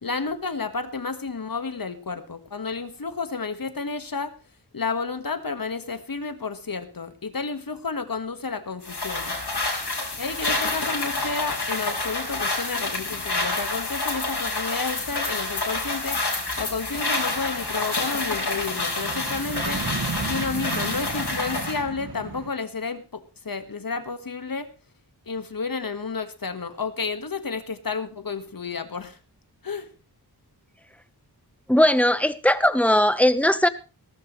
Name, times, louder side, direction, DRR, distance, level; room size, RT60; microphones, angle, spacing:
voice 1, 0.0-4.3 4.7-9.4 10.2-16.2 16.6-19.8 20.2-24.7 25.3-29.2 29.6-29.9, left 4 dB, 60° left, 10 dB, 1.7 m, -31 dB
sound 1, 8.8-21.8, left 2 dB, 85° left, 4.3 m, -28 dB
sound 2, 16.3-22.5, right 4 dB, 65° right, 1.9 m, -35 dB
voice 2, 31.7-33.7, left 1 dB, 5° left, 12 dB, 1.1 m, -19 dB
18.5 x 13.5 x 3.2 m, 0.33 s
wide cardioid pair, 50°, 39 cm